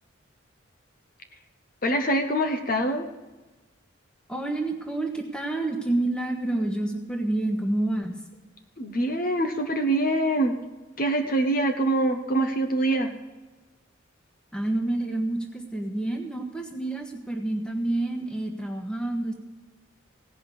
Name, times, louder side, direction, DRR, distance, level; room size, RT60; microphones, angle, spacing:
voice 1, 1.8-3.1 8.8-10.5 11.0-13.1, right 1 dB, 45° left, 5 dB, 1.0 m, -24 dB
voice 2, 4.3-8.1 14.5-19.3, right 2 dB, 5° left, 3 dB, 1.2 m, -28 dB
17.0 x 5.7 x 8.4 m, 1.2 s
head